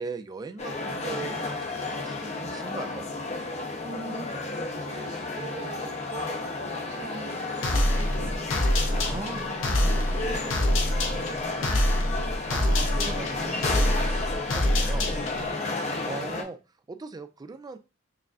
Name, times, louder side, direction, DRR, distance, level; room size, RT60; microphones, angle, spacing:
voice 1, 0.0-3.0 9.0-9.8 12.5-15.1 16.0-16.6 16.9-17.8, right 3 dB, 20° right, 9 dB, 0.3 m, -39 dB
sound 1, 0.6-16.4, left 3 dB, 35° left, 0.6 m, -32 dB
voice 2, 3.8-8.4 8.7-11.8 15.3-15.8, right 3 dB, 40° right, 5 dB, 0.7 m, -44 dB
sound 2, 7.6-15.5, left 1 dB, 75° left, 0.7 m, -26 dB
6.6 x 2.4 x 2.4 m, 0.31 s
head